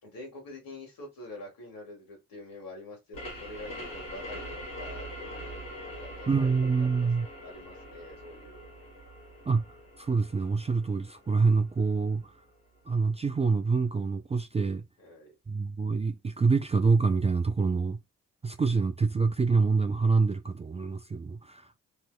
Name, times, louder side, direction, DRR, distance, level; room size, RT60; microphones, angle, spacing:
voice 1, 0.0-8.7 15.0-15.3, left 2 dB, 70° left, 1.9 m, -46 dB
sound 1, 3.1-12.5, equal, 90° left, 1.4 m, -43 dB
voice 2, 6.3-7.3 9.5-9.6 10.0-12.3 12.9-14.8 15.5-18.0 18.4-21.8, right 4 dB, 20° right, 0.3 m, -26 dB
3.2 x 2.8 x 2.3 m
supercardioid pair, 50°, 35 cm